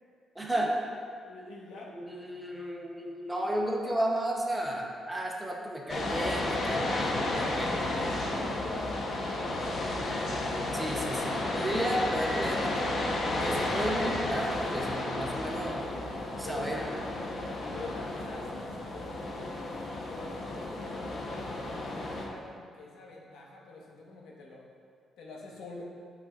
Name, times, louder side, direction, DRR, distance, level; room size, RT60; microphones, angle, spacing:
voice 1, 0.3-0.8 1.9-7.9 10.7-12.9 13.3-15.9 16.4-16.9, right 1 dB, 10° right, -1 dB, 0.7 m, -33 dB
voice 2, 1.2-2.0 7.5-9.8 16.4-17.0 17.7-21.3 21.8-24.7 25.2-25.8, left 2 dB, 90° left, -2 dB, 1.3 m, -46 dB
sound 1, 5.9-22.3, left 2 dB, 45° left, 0.9 m, -32 dB
10.5 x 5.8 x 2.4 m, 2.2 s
cardioid pair, 165°, 0 cm